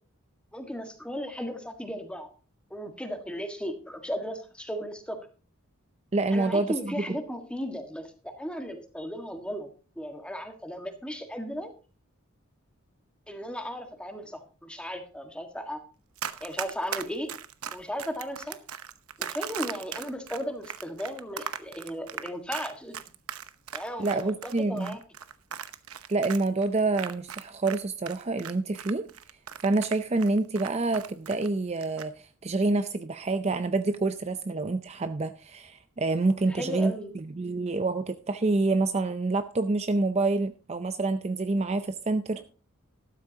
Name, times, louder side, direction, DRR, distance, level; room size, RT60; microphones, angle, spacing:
voice 1, 0.5-2.3 2.7-5.2 6.3-8.1 8.4-9.7 9.9-11.7 13.3-15.8 16.4-17.3 17.7-18.6 19.2-22.9 23.7-25.0 36.5-37.1, equal, 5° left, 5 dB, 1.6 m, -36 dB
voice 2, 6.1-7.0 24.0-25.0 26.1-29.1 29.6-42.4, right 3 dB, 30° right, 10 dB, 0.5 m, -27 dB
Run, 16.2-27.8 28.1-31.5 31.8-32.1, right 8 dB, 80° right, 0.9 m, -38 dB
13.5 x 12.5 x 2.8 m, 0.36 s
head